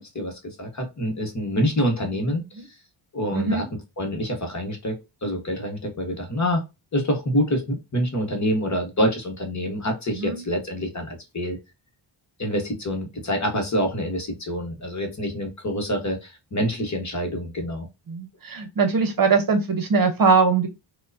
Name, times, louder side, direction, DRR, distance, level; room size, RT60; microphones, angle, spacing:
voice 1, 0.0-2.4 3.1-3.7 4.0-6.6 6.9-11.6 12.4-17.9, equal, 35° left, 1.0 m, -26 dB
voice 2, 3.3-3.7 10.2-10.4 18.1-20.7, right 4 dB, 45° right, 0.8 m, -21 dB
4.5 x 2.2 x 2.5 m
wide cardioid pair, 165°, 47 cm